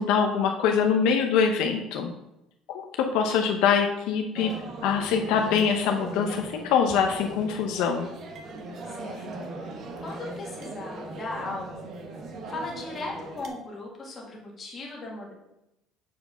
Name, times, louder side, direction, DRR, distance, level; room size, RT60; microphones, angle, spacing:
voice 1, 0.0-2.1 2.7-4.5 4.8-8.1, left 6 dB, 70° left, 3 dB, 0.8 m, -24 dB
sound 1, 4.3-13.5, right 2 dB, 40° right, 1.0 m, -39 dB
voice 2, 8.9-9.4 10.0-11.9 12.5-15.3, left 2 dB, 25° left, -2 dB, 1.7 m, -37 dB
7.5 x 4.7 x 5.6 m, 0.90 s
cardioid pair, 170°, 0 cm